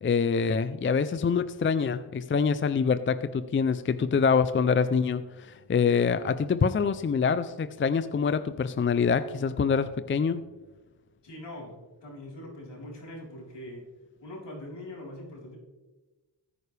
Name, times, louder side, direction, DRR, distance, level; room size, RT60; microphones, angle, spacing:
voice 1, 0.0-10.4, left 5 dB, 30° left, 12 dB, 0.4 m, -25 dB
voice 2, 11.2-13.8 14.2-15.6, left 1 dB, 65° left, -3 dB, 4.1 m, -42 dB
15.0 x 9.4 x 3.3 m, 1.2 s
cardioid pair, 65°, 44 cm